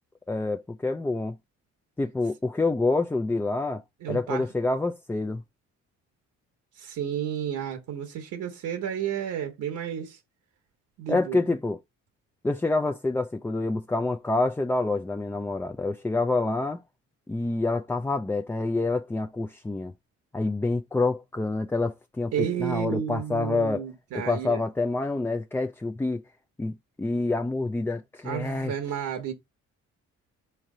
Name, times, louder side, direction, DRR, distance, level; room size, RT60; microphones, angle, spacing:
voice 1, 0.3-1.4 2.0-3.8 4.1-5.4 11.1-11.8 12.4-16.8 17.3-19.9 20.3-23.8 24.1-26.2 26.6-28.7, left 2 dB, 10° left, 0.3 m, -27 dB
voice 2, 4.0-4.4 6.8-10.2 11.0-11.4 22.3-24.6 28.2-29.3, right 9 dB, 75° right, 1.1 m, -31 dB
4.3 x 3.2 x 3.7 m
cardioid pair, 90°, 30 cm